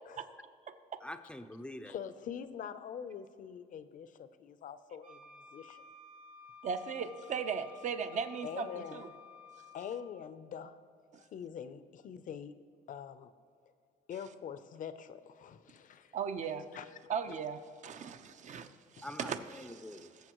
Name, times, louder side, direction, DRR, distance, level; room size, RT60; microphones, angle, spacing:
voice 1, 1.0-1.9 19.0-20.1, left 1 dB, 5° left, 9 dB, 0.6 m, -45 dB
voice 2, 1.9-5.8 8.4-9.0 9.7-10.8 11.2-12.5 12.9-13.3 14.1-16.1 16.7-17.0 17.3-17.4 19.0-19.1, left 8 dB, 50° left, 12 dB, 0.7 m, -44 dB
Wind instrument woodwind instrument, 5.0-10.2, left 5 dB, 80° right, 2.4 m, -54 dB
voice 3, 6.6-9.1 16.1-16.7 17.1-18.7 18.9-19.4, right 6 dB, 45° right, 9 dB, 0.8 m, -37 dB
21.5 x 7.2 x 3.1 m, 2.3 s
cardioid pair, 110°, 17 cm